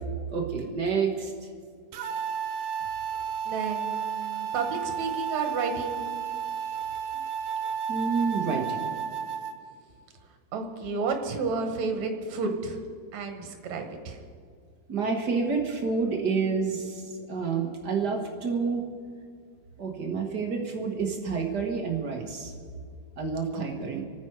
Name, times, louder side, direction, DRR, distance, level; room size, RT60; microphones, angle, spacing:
voice 1, 0.3-1.3 7.9-8.9 14.9-18.8 19.8-22.5 23.2-24.0, right 5 dB, 40° right, 1 dB, 1.5 m, -29 dB
sound 1, 1.9-9.5, right 7 dB, 80° right, 2.6 m, -32 dB
voice 2, 3.5-6.0 10.5-12.8 13.1-14.2 23.5-23.6 23.9-24.0, right 4 dB, 60° right, 4 dB, 2.6 m, -31 dB
28.5 x 9.6 x 4.9 m, 2.1 s
omnidirectional pair, 4.1 m